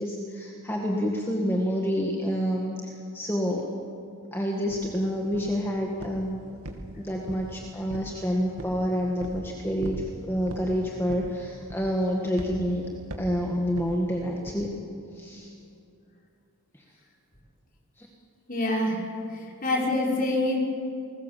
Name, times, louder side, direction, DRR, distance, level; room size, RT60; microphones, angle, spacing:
voice 1, 0.0-3.7 4.3-6.4 7.0-12.8 13.2-14.8 15.1-15.5 16.7-16.8 18.0-18.1, equal, 10° left, 0 dB, 1.7 m, -28 dB
sound 1, 4.7-4.8 5.3-5.6 6.0-6.3 6.6-7.5 7.9-8.2 8.6-8.8 9.2-9.4 9.8-10.1 10.5-10.7 11.1-11.4 11.7-12.0 12.4-12.6 13.1-13.4 13.8-13.9 14.5-14.6, right 1 dB, 80° right, 2.6 m, -38 dB
voice 2, 18.5-19.0 19.3-20.6, left 1 dB, 40° left, -2 dB, 5.0 m, -26 dB
29.0 x 20.5 x 7.5 m, 2.6 s
head